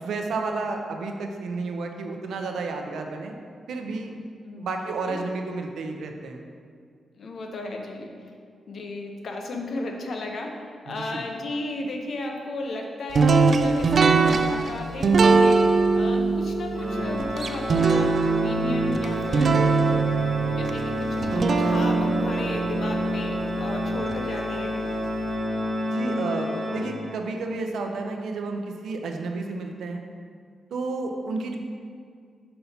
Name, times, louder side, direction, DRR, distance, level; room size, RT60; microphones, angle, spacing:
voice 1, 0.0-3.3 3.7-4.1 4.6-6.4 10.9-11.2 25.9-30.0 30.7-31.6, right 3 dB, 80° right, 3 dB, 0.6 m, -31 dB
voice 2, 4.4-5.2 7.2-8.1 8.7-19.6 20.4-24.9, left 2 dB, 50° left, 2 dB, 0.7 m, -34 dB
sound 1, 13.1-24.2, right 4 dB, 45° right, 0.3 m, -22 dB
Organ, 16.7-27.4, left 1 dB, 20° right, 1.5 m, -30 dB
5.4 x 4.2 x 5.7 m, 2.1 s
wide cardioid pair, 175°, 0 cm